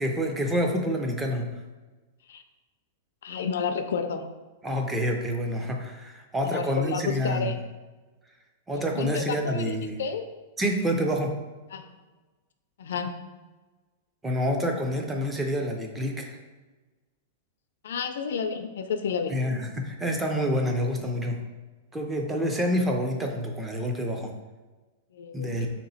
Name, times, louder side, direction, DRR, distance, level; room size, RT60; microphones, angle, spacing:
voice 1, 0.0-1.5 4.6-7.5 8.7-10.0 10.6-11.4 14.2-16.4 19.3-21.4 21.9-24.3 25.3-25.7, equal, 10° right, 2 dB, 0.4 m, -27 dB
voice 2, 3.2-4.3 6.4-7.6 8.7-9.7 10.0-10.2 11.7-11.9 12.8-13.2 17.8-19.3 25.1-25.6, left 6 dB, 75° left, 8 dB, 0.4 m, -31 dB
3.5 x 2.9 x 4.0 m, 1.2 s
supercardioid pair, 170°, 0 cm